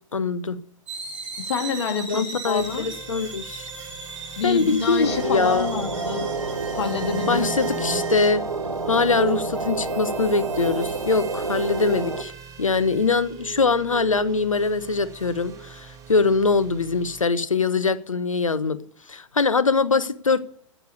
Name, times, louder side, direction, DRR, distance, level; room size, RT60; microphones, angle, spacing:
voice 1, 0.1-0.6 2.1-3.7 4.4-5.7 7.3-8.4 8.9-12.3 12.6-18.8 19.1-20.4, left 4 dB, 75° left, 14 dB, 0.9 m, -23 dB
sound 1, 0.9-8.3, right 3 dB, 65° right, 3.7 m, -38 dB
voice 2, 1.4-2.9 4.4-6.3 6.7-8.0, left 6 dB, 55° left, 5 dB, 2.0 m, -28 dB
sound 2, 2.5-17.2, right 6 dB, 20° right, 1.6 m, -40 dB
sound 3, 5.0-12.2, right 4 dB, 80° right, 1.3 m, -28 dB
10.5 x 8.7 x 8.1 m, 0.64 s
figure-of-eight pair, 110°, 17 cm